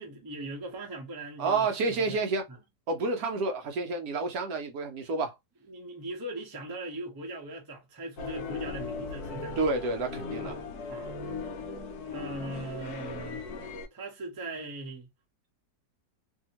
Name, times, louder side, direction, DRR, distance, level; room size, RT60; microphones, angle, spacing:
voice 1, 0.0-2.2 2.5-2.6 5.7-9.6 10.4-10.6 10.9-11.2 12.1-13.4 13.9-15.1, right 2 dB, 25° right, 0.4 m, -40 dB
voice 2, 1.4-2.4 2.9-5.3 9.6-10.6, right 3 dB, 65° right, 1.0 m, -29 dB
sound 1, 8.2-13.9, left 4 dB, 70° left, 1.1 m, -38 dB
2.7 x 2.7 x 2.8 m
omnidirectional pair, 1.9 m